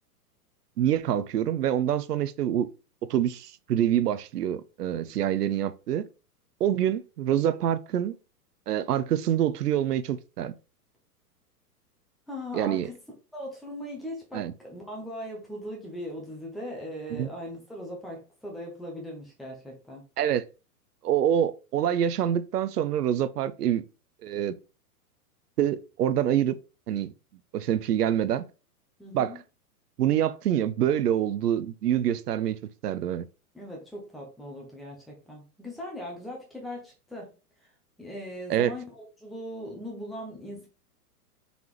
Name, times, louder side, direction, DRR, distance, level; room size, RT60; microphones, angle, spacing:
voice 1, 0.8-2.7 3.1-6.0 6.6-8.1 8.7-10.5 12.5-12.9 14.3-14.5 17.1-17.3 20.2-20.4 21.0-23.8 24.2-24.5 25.6-26.6 26.9-27.1 27.5-28.4 29.1-29.4 30.0-32.6 32.8-33.2 38.5-38.7, right 10 dB, 85° right, 0.6 m, -26 dB
voice 2, 12.3-12.9 13.3-20.0 29.0-29.4 33.5-37.3 37.6-37.7 38.0-40.7, equal, ahead, 0.3 m, -39 dB
3.9 x 3.5 x 3.0 m
hypercardioid pair, 125°, 46 cm